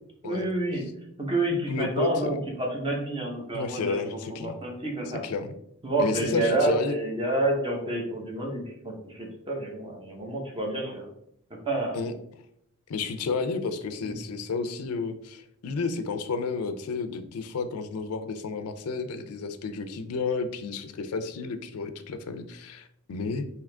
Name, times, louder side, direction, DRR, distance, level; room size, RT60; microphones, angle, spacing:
voice 1, 0.2-0.8 1.2-4.0 4.3-5.2 5.8-11.1 11.5-12.0 14.0-14.1, right 2 dB, 25° right, 0 dB, 0.9 m, -29 dB
voice 2, 1.7-2.4 3.5-4.6 5.2-5.5 6.0-7.0 11.9-12.1 12.9-23.5, left 4 dB, 90° left, 9 dB, 0.4 m, -31 dB
3.6 x 2.8 x 3.3 m, 0.74 s
head